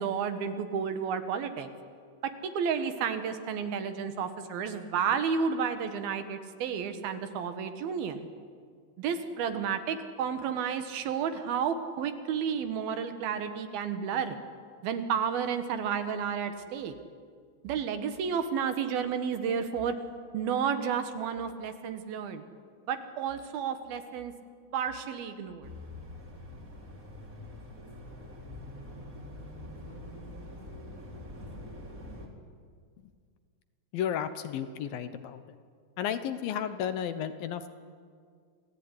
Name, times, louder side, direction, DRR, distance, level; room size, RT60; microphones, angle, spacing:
voice 1, 0.0-1.7 2.2-8.3 9.0-14.4 14.8-16.9 17.6-19.9 20.3-22.4 22.9-24.3 24.7-25.7, right 7 dB, 75° right, 8 dB, 3.3 m, -31 dB
sound 1, 25.6-32.3, left 1 dB, 20° right, 3.3 m, -44 dB
voice 2, 33.9-35.6 36.0-37.7, left 9 dB, 75° left, 10 dB, 2.8 m, -33 dB
27.5 x 18.0 x 9.8 m, 2.1 s
omnidirectional pair, 4.4 m